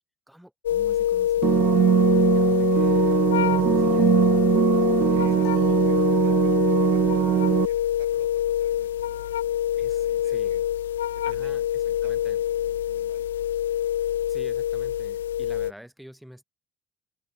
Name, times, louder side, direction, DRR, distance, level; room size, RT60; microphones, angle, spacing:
voice 1, 0.3-6.4 9.8-10.6 11.3-12.4 14.3-16.4, equal, ahead, 5.3 m, -49 dB
sound 1, 0.6-15.7, left 11 dB, 90° left, 0.4 m, -25 dB
sound 2, 1.4-7.7, right 11 dB, 55° right, 0.3 m, -21 dB
voice 2, 5.1-10.6 11.1-13.3, right 16 dB, 85° right, 3.1 m, -51 dB
sound 3, 5.4-6.9, left 26 dB, 70° left, 4.7 m, -52 dB
hypercardioid pair, 60°, 0 cm